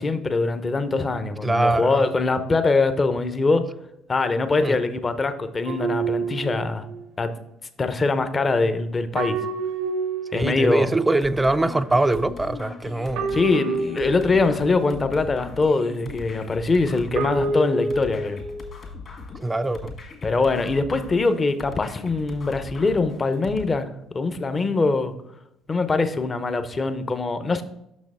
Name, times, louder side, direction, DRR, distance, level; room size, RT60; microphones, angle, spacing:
voice 1, 0.0-3.7 4.1-6.9 7.2-7.3 7.8-9.4 10.3-10.9 13.3-18.4 20.2-23.9 24.1-25.1 25.7-27.6, left 3 dB, 30° left, 0.7 m, -23 dB
voice 2, 1.4-2.0 4.6-4.8 10.3-13.3 19.4-20.0, right 2 dB, 15° right, 0.4 m, -23 dB
sound 1, 5.7-7.0 9.2-10.9 13.2-14.9 17.2-18.7, right 3 dB, 75° right, 0.7 m, -28 dB
sound 2, 11.2-23.7, left 4 dB, 50° left, 1.9 m, -39 dB
6.3 x 6.0 x 3.6 m
supercardioid pair, 70°, 0 cm